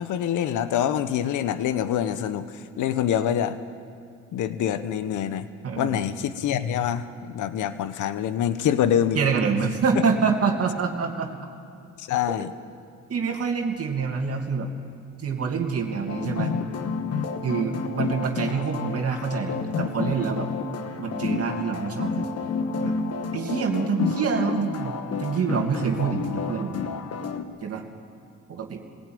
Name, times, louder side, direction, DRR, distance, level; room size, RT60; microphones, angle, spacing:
voice 1, 0.0-3.6 4.3-5.5 5.8-9.2 12.0-12.5, left 10 dB, 80° left, 12 dB, 1.0 m, -25 dB
voice 2, 5.6-6.0 9.1-11.3 13.1-14.7 15.2-16.5 17.4-20.5 21.0-22.2 22.8-23.0 23.3-24.9 25.2-26.9 27.6-27.8 28.5-28.8, right 5 dB, 50° right, 2 dB, 2.5 m, -26 dB
sound 1, 16.1-27.4, left 4 dB, 55° left, 1.5 m, -30 dB
19.0 x 16.5 x 9.4 m, 2.4 s
cardioid pair, 90°, 30 cm